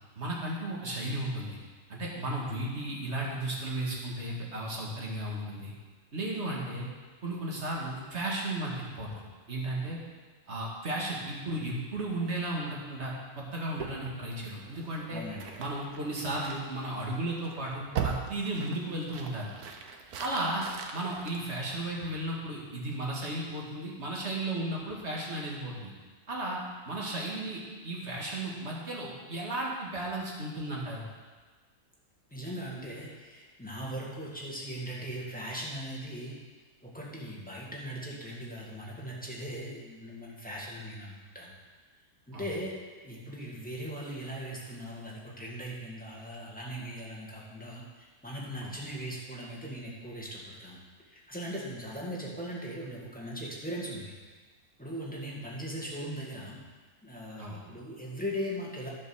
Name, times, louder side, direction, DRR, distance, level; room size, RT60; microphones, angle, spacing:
voice 1, 0.2-1.6 1.9-5.7 6.1-6.9 7.2-9.1 9.5-10.0 10.5-15.2 15.6-19.5 20.2-20.7 20.9-25.9 26.3-26.6 26.9-31.0 42.3-42.5 48.6-48.7 57.4-57.6, right 1 dB, 45° right, -3 dB, 2.1 m, -34 dB
sound 1, 13.8-22.2, right 7 dB, 75° right, 1.4 m, -41 dB
voice 2, 15.1-15.6 32.3-36.4 36.8-41.5 42.3-42.8 43.0-50.8 51.1-54.1 54.8-56.6 57.0-58.9, equal, 5° left, -5 dB, 1.9 m, -39 dB
11.0 x 5.6 x 6.2 m, 1.4 s
omnidirectional pair, 1.7 m